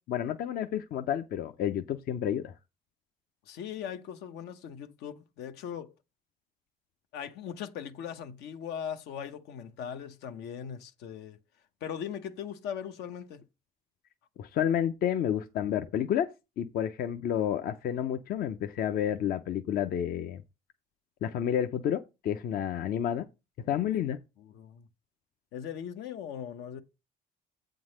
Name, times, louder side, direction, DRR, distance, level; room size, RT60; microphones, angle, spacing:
voice 1, 0.1-2.5 14.4-16.3 16.6-20.4 21.2-23.2 23.7-24.2, left 9 dB, 60° left, 0.7 m, -30 dB
voice 2, 3.5-5.9 7.1-11.4 11.8-13.4 23.6-23.8 24.4-24.9 25.5-26.8, left 8 dB, 85° left, 1.0 m, -39 dB
8.0 x 3.9 x 6.3 m
cardioid pair, 110°, 17 cm